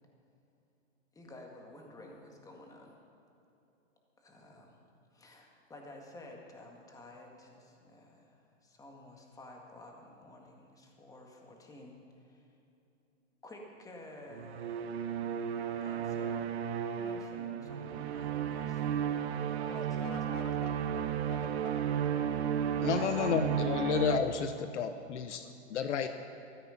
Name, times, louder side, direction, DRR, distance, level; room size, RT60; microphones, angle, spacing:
voice 1, 1.1-3.0 4.2-4.8 5.1-12.5 13.4-15.0 15.8-16.6 17.0-20.4, left 1 dB, 10° left, 1 dB, 1.8 m, -52 dB
sound 1, 14.3-24.2, right 8 dB, 55° right, 1.0 m, -33 dB
voice 2, 19.6-22.4 22.8-23.8 25.4-25.5, left 6 dB, 85° left, 8 dB, 1.4 m, -49 dB
voice 3, 22.8-26.1, left 8 dB, 70° left, 9 dB, 0.9 m, -31 dB
14.5 x 13.5 x 5.7 m, 2.8 s
hypercardioid pair, 140°, 37 cm